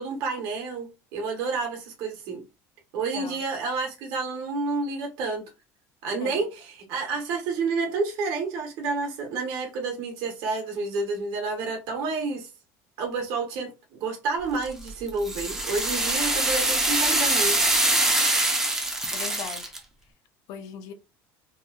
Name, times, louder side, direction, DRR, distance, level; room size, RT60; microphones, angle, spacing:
voice 1, 0.0-2.4 2.9-5.4 6.0-12.5 13.0-13.7 14.0-17.6, right 4 dB, 60° right, 0.9 m, -29 dB
sound 1, 14.6-19.8, right 2 dB, 5° right, 0.4 m, -24 dB
voice 2, 19.1-19.7 20.5-20.9, left 7 dB, 55° left, 0.4 m, -39 dB
2.9 x 2.1 x 2.3 m
cardioid pair, 165°, 7 cm